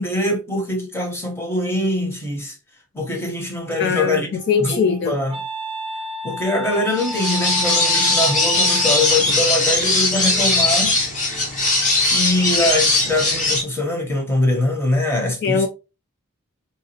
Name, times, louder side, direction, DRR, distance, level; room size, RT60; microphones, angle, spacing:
voice 1, 0.0-2.5 2.9-4.3 4.6-5.4 6.2-11.0 12.0-15.7, left 1 dB, 10° left, 1.0 m, -23 dB
voice 2, 3.8-5.1 15.4-15.7, left 6 dB, 50° left, 0.4 m, -21 dB
Wind instrument woodwind instrument, 4.3-9.4, equal, 25° right, 0.4 m, -32 dB
sound 1, 6.9-13.6, left 2 dB, 35° left, 1.0 m, -19 dB
4.0 x 2.4 x 2.8 m
head